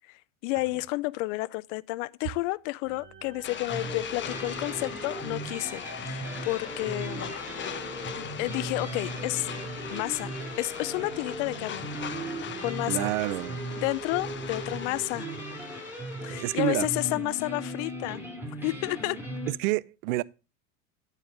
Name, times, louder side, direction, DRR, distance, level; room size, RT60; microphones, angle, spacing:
voice 1, 0.1-7.3 8.2-9.5 9.9-11.9 12.6-13.1 13.8-15.3 16.2-19.2, left 21 dB, 60° left, 0.5 m, -31 dB
sound 1, 2.8-15.1, right 4 dB, 25° right, 2.9 m, -50 dB
sound 2, 3.4-16.5, left 8 dB, 25° left, 0.9 m, -40 dB
sound 3, 3.7-19.5, right 1 dB, 5° right, 2.8 m, -38 dB
voice 2, 12.9-13.6 16.4-16.9 19.5-20.2, right 19 dB, 70° right, 0.5 m, -28 dB
9.5 x 4.9 x 5.1 m
hypercardioid pair, 95°, 42 cm